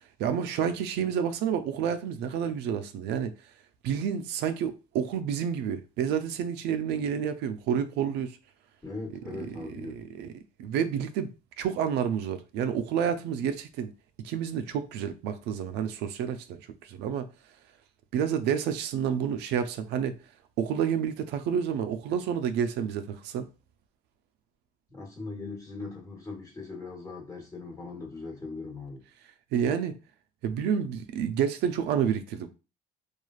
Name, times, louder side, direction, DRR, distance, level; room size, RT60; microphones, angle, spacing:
voice 1, 0.2-3.3 3.8-8.4 9.3-10.3 10.6-11.3 11.6-13.9 14.2-17.3 18.1-20.2 20.6-23.5 29.5-29.9 30.4-32.5, right 8 dB, 85° right, 0.4 m, -29 dB
voice 2, 8.8-10.0 24.9-29.0, left 3 dB, 20° left, 1.1 m, -40 dB
3.1 x 2.3 x 2.3 m
cardioid pair, 110°, 17 cm